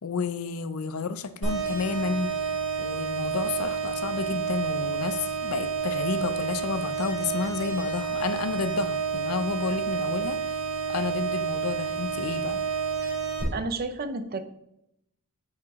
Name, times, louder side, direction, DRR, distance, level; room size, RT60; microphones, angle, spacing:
voice 1, 0.0-2.3 2.8-10.4 10.9-12.6, left 4 dB, 70° left, 12 dB, 0.5 m, -31 dB
sound 1, 1.4-13.4, right 6 dB, 60° right, 2.7 m, -30 dB
voice 2, 13.5-14.4, right 3 dB, 45° right, 10 dB, 0.6 m, -31 dB
8.5 x 4.8 x 3.7 m, 0.80 s
head